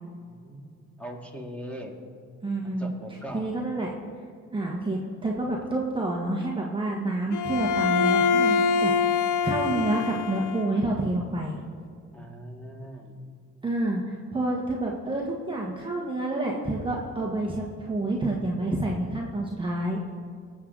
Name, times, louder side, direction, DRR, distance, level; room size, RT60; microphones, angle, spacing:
voice 1, 0.2-2.0 2.8-3.5 12.1-13.2, equal, 5° left, 0 dB, 2.2 m, -40 dB
voice 2, 2.4-2.9 3.3-3.9 4.5-11.6 13.6-20.0, right 2 dB, 15° right, -2 dB, 1.4 m, -28 dB
Bowed string instrument, 7.3-10.8, left 5 dB, 85° left, 0.7 m, -24 dB
19.5 x 7.7 x 3.9 m, 2.4 s
cardioid pair, 90°, 30 cm